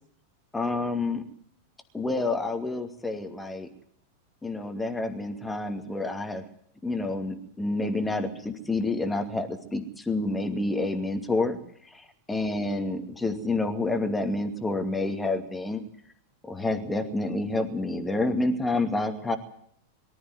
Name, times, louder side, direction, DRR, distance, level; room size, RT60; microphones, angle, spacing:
voice 1, 0.5-1.2 1.9-3.7 4.4-6.4 6.8-15.8 16.4-19.4, left 2 dB, 10° left, 5 dB, 2.5 m, -29 dB
23.5 x 13.5 x 9.4 m, 0.64 s
figure-of-eight pair, 90°, 0 cm